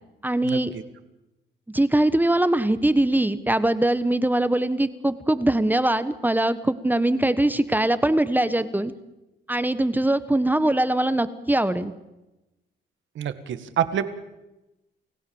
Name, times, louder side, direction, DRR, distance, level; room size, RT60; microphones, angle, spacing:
voice 1, 0.2-0.7 1.7-8.9 9.5-11.9, right 1 dB, 10° right, 13 dB, 1.3 m, -22 dB
voice 2, 13.2-14.0, right 9 dB, 70° right, 11 dB, 1.9 m, -26 dB
29.0 x 16.5 x 7.2 m, 0.97 s
cardioid pair, 90°, 20 cm